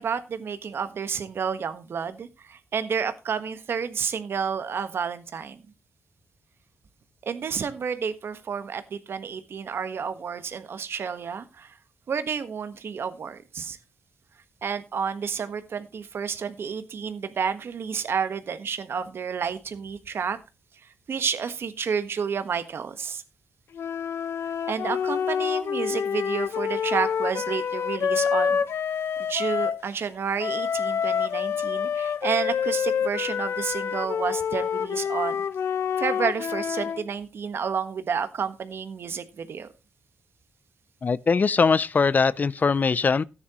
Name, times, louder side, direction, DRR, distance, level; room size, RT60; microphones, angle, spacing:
voice 1, 0.0-5.6 7.2-11.8 12.1-13.8 14.6-20.4 20.8-23.2 24.7-28.6 29.2-35.4 36.0-39.7, right 6 dB, 60° right, 1.3 m, -30 dB
sound 1, 23.7-29.8 30.4-37.0, left 7 dB, 70° left, 0.7 m, -27 dB
voice 2, 41.0-43.2, left 5 dB, 40° left, 0.4 m, -21 dB
13.5 x 9.8 x 3.0 m
cardioid pair, 85°, 4 cm